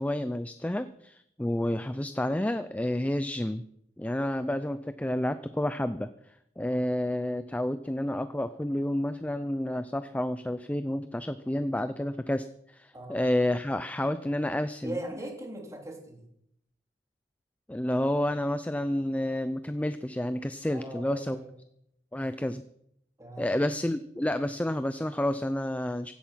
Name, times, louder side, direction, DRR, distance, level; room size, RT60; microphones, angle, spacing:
voice 1, 0.0-3.6 4.0-6.1 6.6-15.0 17.7-21.4 22.1-22.6 23.4-26.1, left 1 dB, 10° left, 11 dB, 0.5 m, -30 dB
voice 2, 14.8-16.3 20.7-21.5 23.2-23.5, right 1 dB, 20° right, 1 dB, 3.2 m, -39 dB
16.0 x 11.5 x 5.7 m, 0.74 s
head